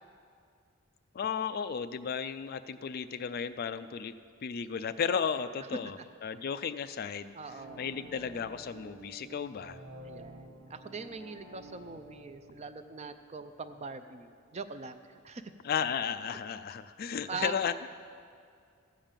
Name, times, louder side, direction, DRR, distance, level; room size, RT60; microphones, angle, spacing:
voice 1, 1.1-4.1 4.4-7.3 7.8-9.8 15.6-17.7, left 7 dB, 45° left, 12 dB, 0.3 m, -34 dB
voice 2, 7.3-7.8 10.0-15.5 17.3-17.6, right 4 dB, 30° right, 10 dB, 0.4 m, -42 dB
sound 1, 7.3-14.2 14.5-14.6, right 2 dB, 75° right, 1.5 m, -51 dB
15.0 x 5.2 x 7.3 m, 2.2 s
head